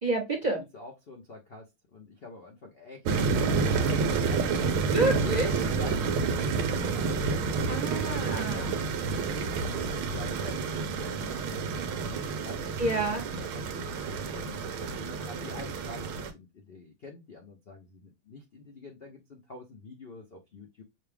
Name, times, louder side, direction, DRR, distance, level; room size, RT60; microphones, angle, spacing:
voice 1, 0.0-0.6 4.9-5.5 7.7-8.7 12.8-13.2, right 2 dB, 25° right, 1 dB, 1.0 m, -29 dB
voice 2, 0.5-4.4 5.2-7.1 8.5-12.1 12.4-12.6 13.1-20.8, left 3 dB, 60° left, 2 dB, 0.6 m, -47 dB
sound 1, 3.1-16.3, right 4 dB, 75° right, 1.5 m, -29 dB
6.4 x 2.3 x 3.4 m, 0.21 s
omnidirectional pair, 2.3 m